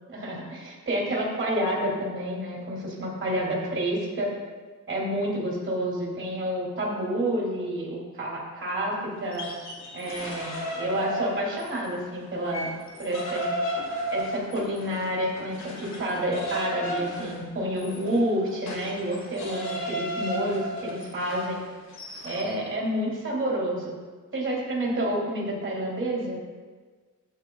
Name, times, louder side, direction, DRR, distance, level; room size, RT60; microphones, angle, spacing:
voice 1, 0.1-4.3 4.9-9.5 9.9-12.7 13.0-13.5 14.1-21.6 22.2-23.9 24.3-26.4, right 1 dB, 40° right, -4 dB, 2.6 m, -29 dB
sound 1, 9.2-11.9 12.3-22.5, equal, 60° left, 1.7 m, -34 dB
13.0 x 8.6 x 2.3 m, 1.4 s
wide cardioid pair, 160°, 32 cm